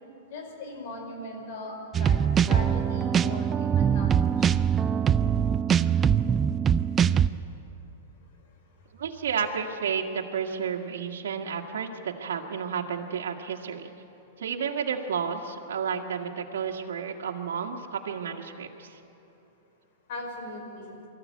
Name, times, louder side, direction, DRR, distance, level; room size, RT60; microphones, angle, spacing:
voice 1, 0.3-2.2 2.5-4.5 20.1-21.0, left 2 dB, 55° left, 3 dB, 5.4 m, -39 dB
sound 1, 1.9-7.3, right 8 dB, 20° right, 0.4 m, -23 dB
voice 2, 8.9-13.9 14.4-19.0, right 7 dB, 85° right, 1 dB, 1.7 m, -31 dB
23.0 x 14.0 x 9.4 m, 3.0 s
hypercardioid pair, 145°, 0 cm